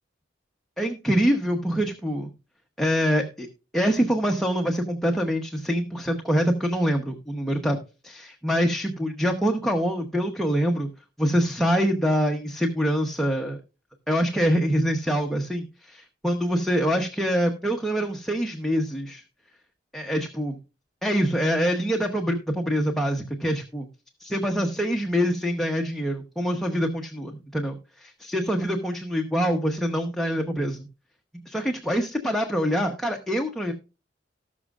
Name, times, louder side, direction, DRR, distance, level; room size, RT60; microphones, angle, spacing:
voice 1, 0.8-2.3 2.8-3.5 3.7-7.8 8.0-10.9 11.2-13.6 14.1-19.2 19.9-20.6 21.0-23.9 24.2-30.9 31.5-33.7, equal, ahead, 2 dB, 0.9 m, -25 dB
18.5 x 6.2 x 2.4 m, 0.31 s
head